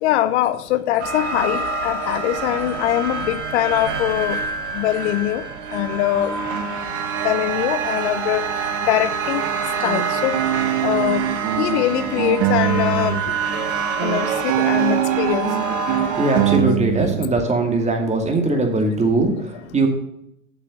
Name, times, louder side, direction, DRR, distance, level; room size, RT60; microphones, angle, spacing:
voice 1, 0.0-4.4 4.7-5.4 5.7-6.4 7.2-9.5 9.8-10.4 10.8-11.3 11.6-13.2 14.0-15.6 18.5-18.6, left 13 dB, 60° left, 14 dB, 0.7 m, -22 dB
sound 1, 1.0-16.6, right 5 dB, 60° right, 1.8 m, -26 dB
sound 2, 9.4-13.3 13.5-17.3, right 13 dB, 45° right, 0.9 m, -23 dB
voice 2, 16.2-19.9, right 2 dB, 20° right, 3 dB, 2.3 m, -20 dB
7.5 x 6.8 x 7.4 m, 0.77 s
hypercardioid pair, 90°, 38 cm